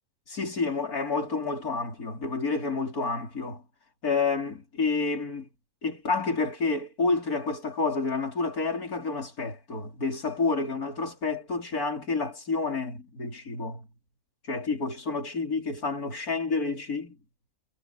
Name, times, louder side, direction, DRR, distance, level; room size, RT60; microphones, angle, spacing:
voice 1, 0.3-3.6 4.0-5.5 5.8-13.9 14.5-17.2, left 4 dB, 85° left, 4.3 m, -29 dB
omnidirectional pair, 1.5 m